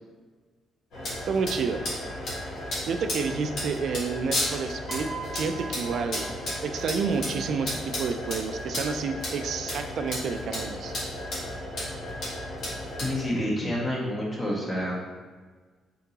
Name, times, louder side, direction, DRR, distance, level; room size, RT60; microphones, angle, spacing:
sound 1, 0.9-13.2, left 1 dB, 65° left, 1.5 m, -33 dB
voice 1, 1.2-1.8 2.9-5.1 5.3-6.3 6.6-10.9, right 5 dB, 65° right, 7 dB, 0.3 m, -29 dB
Piano, 4.9-7.2 8.3-8.5, right 5 dB, 35° right, 0.8 m, -42 dB
voice 2, 13.0-15.0, left 1 dB, 25° left, -4 dB, 1.2 m, -28 dB
3.8 x 3.7 x 2.8 m, 1.4 s
cardioid pair, 90°, 0 cm